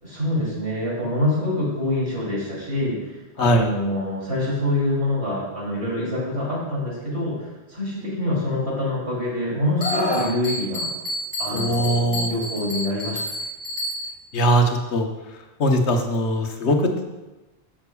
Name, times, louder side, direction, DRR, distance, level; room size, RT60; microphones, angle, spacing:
voice 1, 0.0-10.9 11.4-13.3, left 1 dB, 75° right, -6 dB, 3.3 m, -26 dB
Screaming, 9.8-10.4 11.8-12.1, left 1 dB, 65° left, 1.4 m, -26 dB
Bell, 9.8-14.3, equal, 25° right, 2.1 m, -30 dB
voice 2, 11.5-12.3 14.3-15.1 15.6-17.0, equal, 90° left, 3 dB, 1.2 m, -20 dB
13.5 x 5.9 x 2.3 m, 1.1 s
omnidirectional pair, 1.1 m